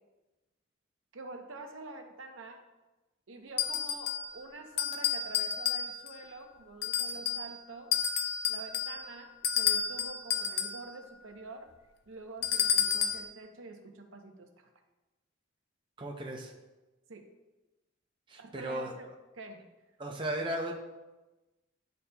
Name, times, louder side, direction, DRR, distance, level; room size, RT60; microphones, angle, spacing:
voice 1, 1.1-2.6 3.3-8.0 8.5-11.7 12.1-14.7 17.1-17.3 18.4-19.1 19.4-19.6, right 3 dB, 80° right, 4 dB, 0.8 m, -47 dB
sound 1, 3.6-4.3 4.8-6.2 6.8-7.5 7.9-10.8 12.4-13.3, left 8 dB, 55° left, 0.5 m, -31 dB
voice 2, 16.0-16.5 18.3-18.9 20.0-20.7, right 1 dB, 25° right, 0 dB, 0.6 m, -35 dB
11.0 x 4.1 x 2.3 m, 1.1 s
head